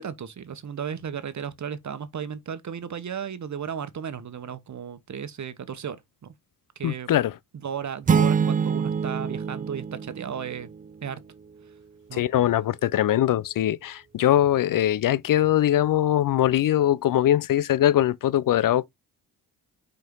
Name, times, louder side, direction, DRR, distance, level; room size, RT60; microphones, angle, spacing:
voice 1, 0.0-6.3 6.8-7.1 7.5-10.7 11.0-11.2 12.1-12.2, right 7 dB, 45° right, 1.2 m, -34 dB
voice 2, 6.8-7.3 12.1-18.9, left 12 dB, 55° left, 0.5 m, -22 dB
sound 1, 8.1-10.9, right 6 dB, 25° right, 0.3 m, -25 dB
5.8 x 4.6 x 3.7 m
cardioid pair, 75°, 39 cm